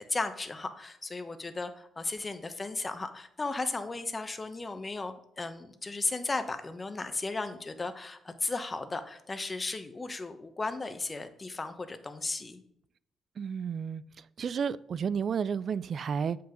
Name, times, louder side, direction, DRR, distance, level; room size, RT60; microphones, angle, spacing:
voice 1, 0.0-12.6, left 3 dB, 25° left, 1.0 m, -35 dB
voice 2, 13.4-16.4, right 6 dB, 50° right, 0.4 m, -32 dB
7.5 x 5.7 x 5.2 m
cardioid pair, 90°, 0 cm